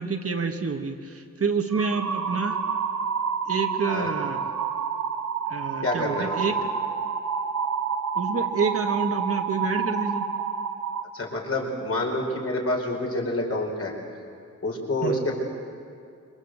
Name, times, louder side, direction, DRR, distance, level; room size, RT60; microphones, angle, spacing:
voice 1, 0.0-2.6 3.5-4.5 5.5-6.5 8.1-10.3 15.0-15.2, right 5 dB, 50° right, 5 dB, 1.6 m, -28 dB
sound 1, 1.7-11.0, right 6 dB, 80° right, 2.2 m, -29 dB
voice 2, 5.8-6.4 11.1-13.9 14.6-15.4, left 1 dB, 50° left, 0 dB, 4.9 m, -27 dB
26.5 x 24.5 x 8.0 m, 2.4 s
wide cardioid pair, 155°, 30 cm